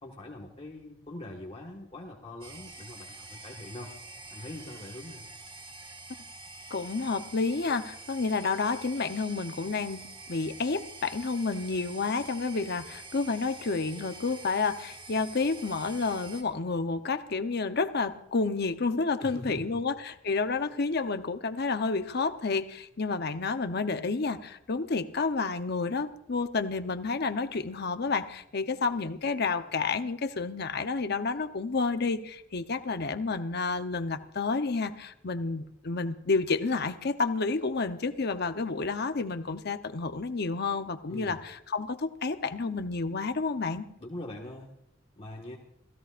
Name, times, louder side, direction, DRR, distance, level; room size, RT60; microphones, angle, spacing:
voice 1, 0.0-3.9 4.3-5.3 19.2-19.8 41.1-41.4 44.0-44.7 45.2-45.6, left 1 dB, 30° left, -2 dB, 1.6 m, -42 dB
sound 1, 2.4-16.4, right 3 dB, 30° right, 2.5 m, -46 dB
voice 2, 6.7-43.8, left 4 dB, 55° left, 9 dB, 0.8 m, -30 dB
29.5 x 16.5 x 2.5 m, 0.77 s
head